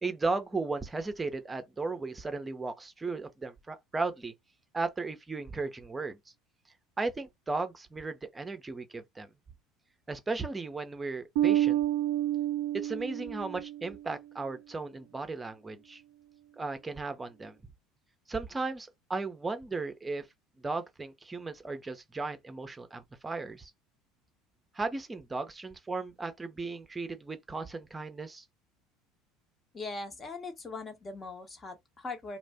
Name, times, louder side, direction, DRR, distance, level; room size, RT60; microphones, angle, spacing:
voice 1, 0.0-4.3 4.7-6.2 7.0-9.3 10.1-11.8 12.7-16.0 16.6-17.6 18.3-20.3 20.6-23.7 24.7-28.4, right 3 dB, 20° right, 0.7 m, -36 dB
Bass guitar, 11.4-14.0, right 13 dB, 70° right, 0.3 m, -29 dB
voice 2, 29.7-32.4, left 3 dB, 30° left, 1.0 m, -40 dB
2.5 x 2.1 x 3.4 m
hypercardioid pair, 70°, 0 cm